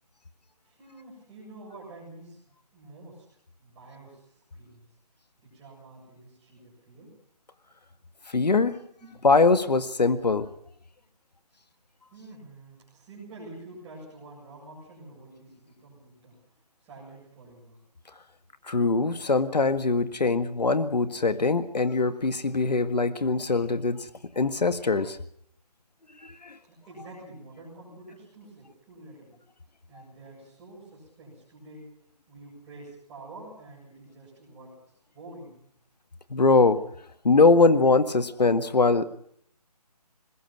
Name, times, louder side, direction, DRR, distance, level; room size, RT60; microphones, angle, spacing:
voice 1, 0.6-3.3 3.6-4.9 5.4-7.1 9.0-9.2 12.1-16.4 16.8-17.8 26.7-29.4 29.9-31.9 32.3-34.7 35.1-35.7, right 2 dB, 10° right, -5 dB, 7.6 m, -48 dB
voice 2, 8.3-8.8 9.2-10.5 18.7-24.1 24.4-25.2 36.3-36.8 37.2-39.0, left 3 dB, 85° left, 10 dB, 1.9 m, -22 dB
23.5 x 21.0 x 6.0 m, 0.65 s
hypercardioid pair, 175°, 21 cm